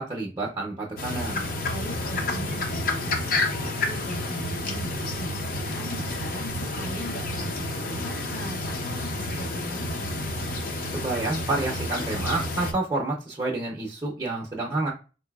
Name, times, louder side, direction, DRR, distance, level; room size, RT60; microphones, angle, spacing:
voice 1, 0.0-1.4 10.9-14.9, right 2 dB, 20° right, -3 dB, 0.5 m, -29 dB
sound 1, 1.0-12.7, left 2 dB, 50° left, 0.6 m, -30 dB
voice 2, 1.7-10.2, equal, 75° left, -2 dB, 1.3 m, -39 dB
3.9 x 2.6 x 2.3 m, 0.33 s
head